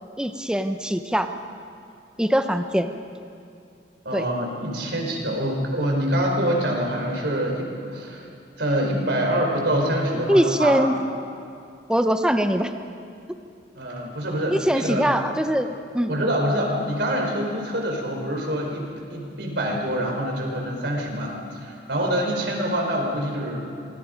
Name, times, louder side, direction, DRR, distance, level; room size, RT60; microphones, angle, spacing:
voice 1, 0.2-1.3 2.2-2.9 4.1-4.2 10.3-11.0 11.9-12.7 14.5-16.1, equal, 5° right, 7 dB, 0.8 m, -22 dB
voice 2, 4.0-8.3 8.6-10.8 13.7-15.0 16.1-23.7, equal, 65° right, 0 dB, 4.7 m, -25 dB
27.5 x 20.0 x 5.2 m, 2.5 s
head